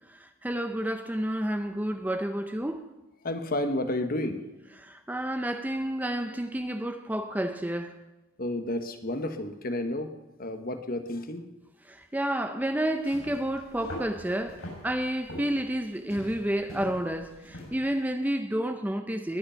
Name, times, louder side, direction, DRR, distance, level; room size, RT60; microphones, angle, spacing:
voice 1, 0.1-2.9 4.8-8.0 11.9-19.4, right 1 dB, 10° right, 0.6 m, -30 dB
voice 2, 3.2-4.5 8.4-10.1 10.4-11.5, left 1 dB, 45° left, 1.2 m, -31 dB
sound 1, 12.9-18.0, left 1 dB, 85° left, 7.1 m, -43 dB
20.5 x 9.6 x 5.7 m
head